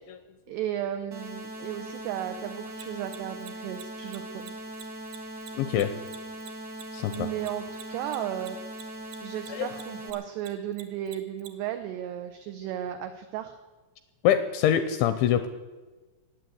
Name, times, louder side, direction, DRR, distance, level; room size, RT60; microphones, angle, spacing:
voice 1, 0.5-4.5 7.1-8.6 9.2-13.6, right 11 dB, 90° right, 7 dB, 2.3 m, -34 dB
sound 1, 1.1-10.1, right 1 dB, 45° right, 1.2 m, -40 dB
Mechanisms, 2.7-9.5 9.7-11.5, right 11 dB, 70° right, 3.0 m, -45 dB
voice 2, 5.5-6.0 6.9-7.3 9.5-9.7 14.2-15.5, left 10 dB, 85° left, 10 dB, 2.7 m, -24 dB
18.5 x 7.9 x 9.3 m, 1.2 s
omnidirectional pair, 5.9 m